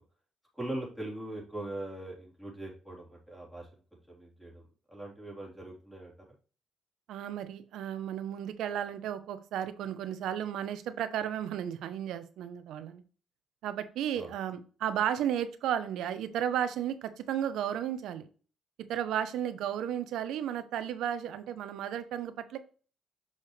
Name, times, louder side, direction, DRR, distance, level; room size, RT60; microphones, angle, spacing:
voice 1, 0.5-6.1 14.1-14.3, right 1 dB, 5° left, -3 dB, 3.5 m, -41 dB
voice 2, 7.1-13.0 13.6-18.3 18.9-22.6, right 10 dB, 85° right, 11 dB, 0.8 m, -33 dB
6.6 x 5.4 x 3.3 m, 0.39 s
cardioid pair, 90°, 0 cm